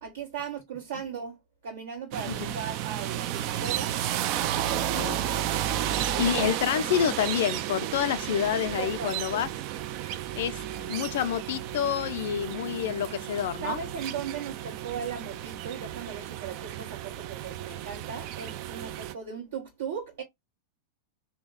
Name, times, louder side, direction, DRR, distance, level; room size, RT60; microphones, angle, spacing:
voice 1, 0.0-1.4 1.6-4.0 6.1-6.3 8.8-9.4 13.6-20.2, right 7 dB, 60° right, 0.7 m, -37 dB
sound 1, 2.1-19.1, right 11 dB, 45° right, 0.3 m, -32 dB
voice 2, 4.9-5.3 6.2-9.5 10.4-10.6 10.9-13.8, left 10 dB, 55° left, 0.4 m, -28 dB
2.9 x 2.1 x 3.6 m
figure-of-eight pair, 90°, 0 cm